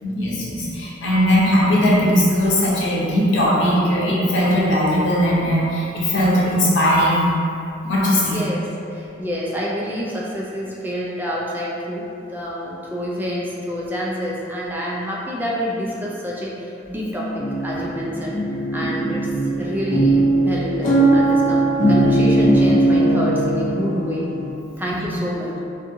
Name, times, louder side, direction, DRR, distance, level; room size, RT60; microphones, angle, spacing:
voice 1, 0.0-7.3 7.8-8.4 17.7-17.8 18.8-19.0 24.9-25.0, equal, 85° left, -6 dB, 0.7 m, -19 dB
voice 2, 8.2-12.0 12.3-18.4 18.7-19.3 19.6-24.3 24.8-25.6, equal, 10° right, -5 dB, 0.3 m, -27 dB
sound 1, 17.4-24.5, right 1 dB, 40° left, 0.6 m, -19 dB
2.6 x 2.5 x 2.6 m, 2.6 s
head